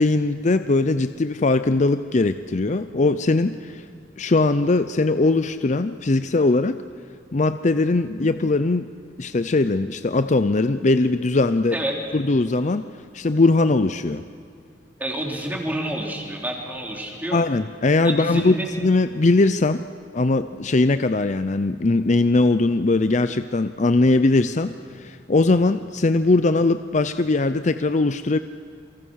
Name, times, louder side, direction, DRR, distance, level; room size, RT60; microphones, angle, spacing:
voice 1, 0.0-3.9 4.2-6.8 7.3-8.9 9.2-11.8 12.1-12.9 13.1-14.2 17.3-19.8 20.1-28.4, left 2 dB, 40° left, 11 dB, 0.6 m, -20 dB
voice 2, 15.0-17.4 18.0-18.7, right 1 dB, 10° right, 0 dB, 3.6 m, -28 dB
27.5 x 24.0 x 6.4 m, 2.3 s
head